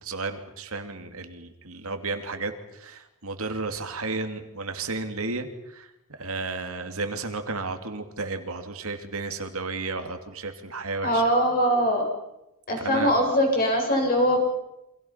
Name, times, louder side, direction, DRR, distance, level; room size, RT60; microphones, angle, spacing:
voice 1, 0.0-11.2 12.8-13.1, right 3 dB, 65° right, 6 dB, 2.7 m, -33 dB
voice 2, 11.0-12.0 12.7-14.4, equal, 40° left, 2 dB, 7.9 m, -22 dB
29.5 x 26.5 x 5.8 m, 0.90 s
head